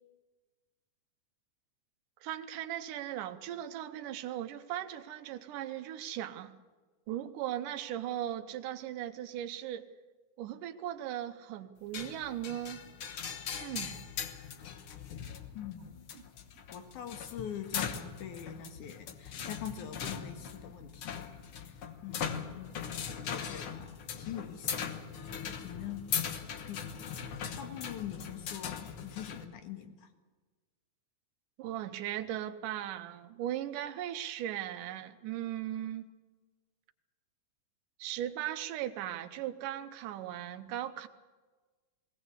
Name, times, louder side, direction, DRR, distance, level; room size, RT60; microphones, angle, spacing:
voice 1, 2.2-6.5 7.1-9.8 10.4-12.9 13.5-14.1 31.6-36.1 38.0-41.1, right 12 dB, 85° right, 7 dB, 2.5 m, -38 dB
sound 1, 11.9-29.4, left 7 dB, 55° left, 1.7 m, -40 dB
voice 2, 15.5-15.9 16.7-22.8 23.1-25.1 25.6-26.1 26.7-27.2 27.6-30.1, left 10 dB, 75° left, 6 dB, 3.1 m, -43 dB
20.5 x 18.0 x 8.1 m, 1.3 s
omnidirectional pair, 3.6 m